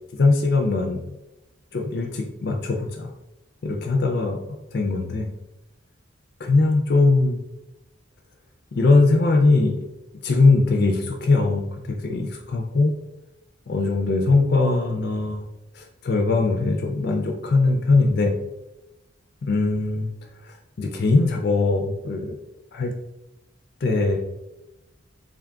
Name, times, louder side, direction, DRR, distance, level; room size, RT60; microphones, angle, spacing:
voice 1, 0.1-1.2 1.7-3.1 3.6-4.4 4.7-5.3 6.4-7.4 8.7-9.8 10.2-12.9 13.7-15.5 15.7-18.3 19.4-20.1 20.4-22.4 22.7-22.9 23.8-24.2, left 3 dB, 50° left, 1 dB, 0.4 m, -21 dB
3.7 x 2.3 x 3.7 m, 0.95 s
head